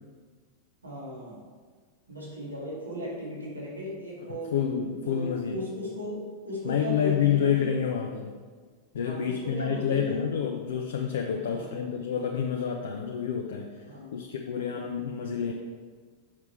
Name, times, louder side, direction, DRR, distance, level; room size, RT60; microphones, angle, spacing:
voice 1, 0.8-1.4 2.1-4.5 5.0-7.7 9.0-10.2 11.4-12.0 13.8-14.2, left 1 dB, 80° right, -5 dB, 2.0 m, -37 dB
voice 2, 4.5-5.6 6.6-8.3 8.9-13.7 14.1-15.5, left 8 dB, 60° left, 2 dB, 0.5 m, -28 dB
7.3 x 5.8 x 3.3 m, 1.5 s
figure-of-eight pair, 90°, 0 cm